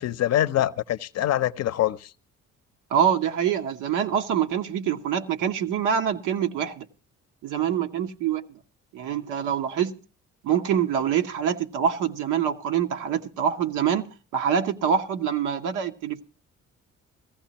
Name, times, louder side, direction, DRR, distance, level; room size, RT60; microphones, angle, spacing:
voice 1, 0.0-2.1, left 12 dB, 60° left, 0.6 m, -24 dB
voice 2, 2.9-6.9 7.4-8.6 8.9-10.0 10.4-16.2, right 8 dB, 90° right, 0.9 m, -25 dB
17.0 x 14.5 x 2.9 m
cardioid pair, 90°, 30 cm